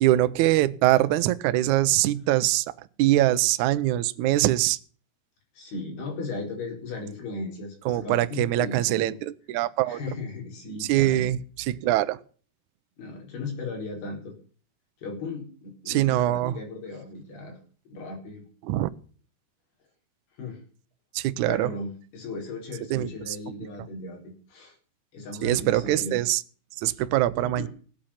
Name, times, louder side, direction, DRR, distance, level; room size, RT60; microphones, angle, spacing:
voice 1, 0.0-2.7 3.0-4.8 7.9-10.0 10.8-11.4 11.7-12.2 15.9-16.6 18.6-18.9 21.1-21.7 22.9-23.4 25.4-26.4 26.8-27.7, right 15 dB, 85° right, 13 dB, 1.7 m, -23 dB
voice 2, 5.5-9.2 9.9-11.3 13.0-14.4 15.0-17.6 17.9-18.4 20.4-20.6 21.4-24.8 25.1-26.2 27.4-27.7, left 3 dB, 85° left, 1 dB, 6.5 m, -37 dB
17.0 x 9.0 x 5.8 m, 0.42 s
omnidirectional pair, 4.5 m